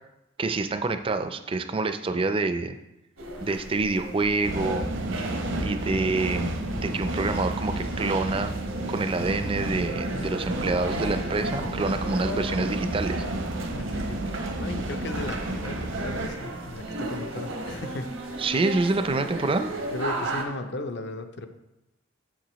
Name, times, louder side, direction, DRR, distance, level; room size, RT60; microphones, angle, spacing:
voice 1, 0.4-2.8 3.4-4.9 5.6-6.5 6.8-8.5 8.9-13.2 18.4-19.7, right 3 dB, 25° right, 9 dB, 0.4 m, -27 dB
sound 1, 3.2-20.4, right 2 dB, 85° right, 1.1 m, -36 dB
sound 2, 4.4-16.3, right 1 dB, 70° right, 0.8 m, -31 dB
Wind / Thunder, 5.3-13.6 13.8-13.9, equal, 85° left, 1.0 m, -43 dB
voice 2, 13.7-14.3 14.6-18.4 19.9-21.5, left 2 dB, 60° left, 8 dB, 0.6 m, -36 dB
7.5 x 6.8 x 3.0 m, 0.92 s
head